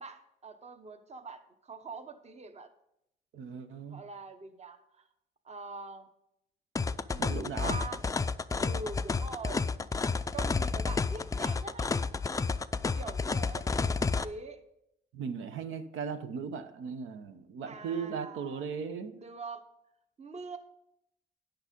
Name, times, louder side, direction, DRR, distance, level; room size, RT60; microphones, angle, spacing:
voice 1, 0.0-2.7 3.9-5.0 5.4-6.1 7.1-8.0 8.6-9.6 10.3-11.9 12.9-14.6 17.7-18.6 19.2-19.6 20.2-20.6, right 4 dB, 35° right, 8 dB, 0.9 m, -44 dB
voice 2, 3.3-4.0 7.2-7.8 15.1-19.2, right 6 dB, 80° right, 9 dB, 0.9 m, -37 dB
sound 1, 6.8-14.3, left 4 dB, 15° left, 0.3 m, -31 dB
10.0 x 6.0 x 5.2 m, 0.79 s
cardioid pair, 90°, 20 cm